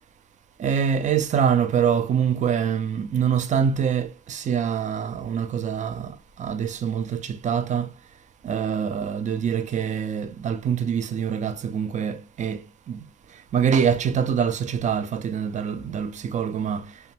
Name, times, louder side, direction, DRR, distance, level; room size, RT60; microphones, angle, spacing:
voice 1, 0.6-7.9 8.4-13.0 13.3-17.0, right 7 dB, 40° right, 0.4 m, -25 dB
2.6 x 2.1 x 2.8 m
cardioid pair, 90°, 20 cm